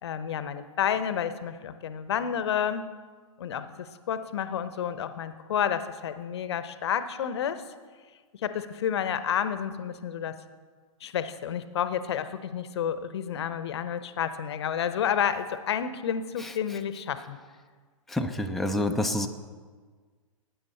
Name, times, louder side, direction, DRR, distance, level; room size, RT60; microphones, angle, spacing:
voice 1, 0.0-2.9 3.4-7.6 8.4-10.4 11.0-17.4, left 8 dB, 50° left, 12 dB, 0.9 m, -30 dB
voice 2, 18.1-19.3, left 1 dB, ahead, 4 dB, 0.6 m, -28 dB
19.0 x 9.4 x 4.3 m, 1.5 s
figure-of-eight pair, 110°, 17 cm